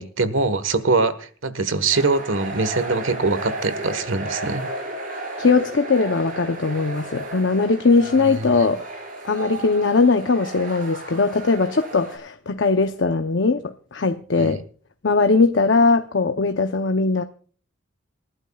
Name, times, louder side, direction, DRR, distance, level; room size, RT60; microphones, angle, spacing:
voice 1, 0.0-4.7 8.2-8.7 14.3-14.6, right 3 dB, 75° right, 1.4 m, -23 dB
sound 1, 1.9-12.2, right 1 dB, 40° right, 5.4 m, -34 dB
voice 2, 5.4-8.8 9.2-13.6 13.9-14.6 15.0-17.2, left 4 dB, 65° left, 0.7 m, -20 dB
28.0 x 11.5 x 2.3 m
head